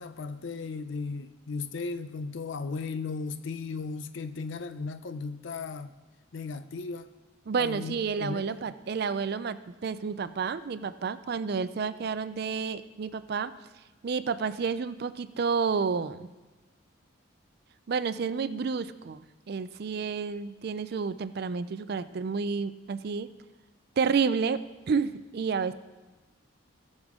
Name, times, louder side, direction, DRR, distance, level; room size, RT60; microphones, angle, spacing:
voice 1, 0.0-5.9 6.3-7.1 7.6-8.6, left 4 dB, 70° left, 11 dB, 0.5 m, -36 dB
voice 2, 7.5-13.6 14.0-16.3 17.9-23.3 24.0-24.6 24.9-25.7, right 5 dB, 50° right, 14 dB, 0.4 m, -30 dB
18.5 x 6.4 x 3.7 m, 1.2 s
head